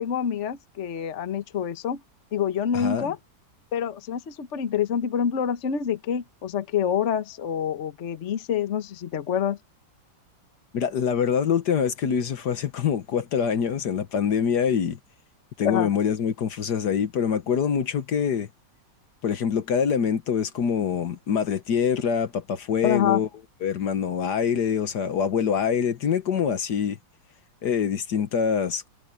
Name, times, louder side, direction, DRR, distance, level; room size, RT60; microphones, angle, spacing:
voice 1, 0.0-2.0 2.3-3.2 3.7-9.6 15.6-15.9 22.8-23.2, left 8 dB, 45° left, 1.2 m, -26 dB
voice 2, 2.7-3.1 10.7-15.0 15.6-18.5 19.2-23.3 23.6-27.0 27.6-28.9, left 7 dB, 65° left, 1.6 m, -25 dB
omnidirectional pair, 2.0 m